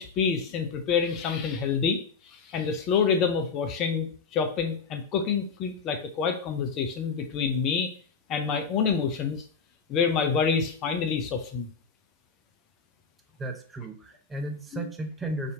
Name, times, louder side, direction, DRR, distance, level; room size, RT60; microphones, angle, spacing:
voice 1, 0.0-7.9 8.3-9.4 9.9-11.7 14.7-14.9, left 6 dB, 35° left, 7 dB, 0.5 m, -27 dB
voice 2, 13.4-15.5, right 1 dB, 10° right, 3 dB, 0.7 m, -34 dB
4.9 x 2.8 x 2.7 m, 0.44 s
hypercardioid pair, 110°, 0 cm